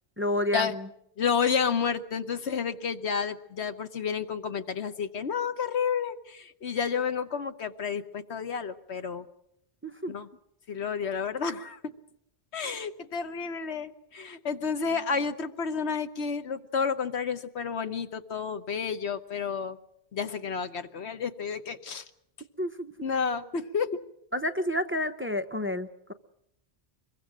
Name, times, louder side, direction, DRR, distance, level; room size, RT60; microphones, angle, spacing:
voice 1, 0.2-0.9 9.8-10.1 22.6-22.9 24.3-26.1, left 1 dB, 15° right, 9 dB, 0.8 m, -30 dB
voice 2, 1.2-9.3 10.1-10.3 10.7-11.9 12.5-19.8 20.1-22.0 23.0-24.0, left 6 dB, 85° left, 10 dB, 1.4 m, -30 dB
24.5 x 22.5 x 6.2 m, 0.76 s
omnidirectional pair, 1.1 m